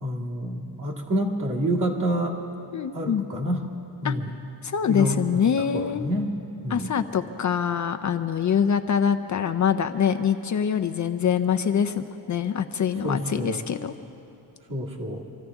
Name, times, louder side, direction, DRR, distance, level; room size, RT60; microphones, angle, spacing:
voice 1, 0.0-2.4 2.9-3.6 4.0-4.4 4.9-5.5 5.7-6.4 6.6-7.0 13.0-13.6 14.7-15.2, equal, 45° right, -2 dB, 2.0 m, -28 dB
voice 2, 2.7-3.2 4.0-4.1 4.6-6.0 6.7-13.9, left 7 dB, 45° left, 8 dB, 0.5 m, -24 dB
26.0 x 14.5 x 3.5 m, 2.9 s
wide cardioid pair, 165°, 42 cm